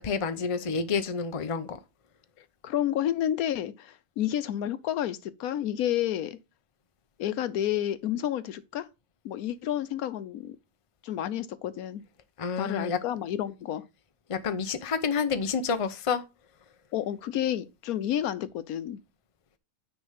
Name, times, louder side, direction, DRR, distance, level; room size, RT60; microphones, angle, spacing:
voice 1, 0.0-1.8 12.4-13.0 14.3-16.2, left 5 dB, 30° left, 0.6 m, -29 dB
voice 2, 2.4-6.4 7.2-8.9 9.2-10.6 11.0-12.0 12.6-13.8 16.9-19.0, left 11 dB, 80° left, 1.1 m, -30 dB
9.6 x 3.5 x 5.7 m
omnidirectional pair, 1.5 m